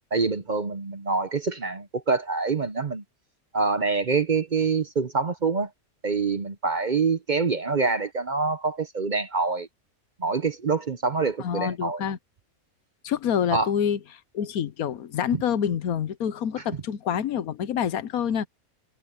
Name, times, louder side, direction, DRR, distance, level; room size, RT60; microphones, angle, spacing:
voice 1, 0.1-3.0 3.5-5.7 6.0-9.7 10.2-12.0 13.5-13.7 15.3-15.4, right 4 dB, 40° right, 0.8 m, -25 dB
voice 2, 11.4-12.2 13.0-14.0 14.3-18.5, left 8 dB, 85° left, 1.3 m, -27 dB
omnidirectional pair, 1.5 m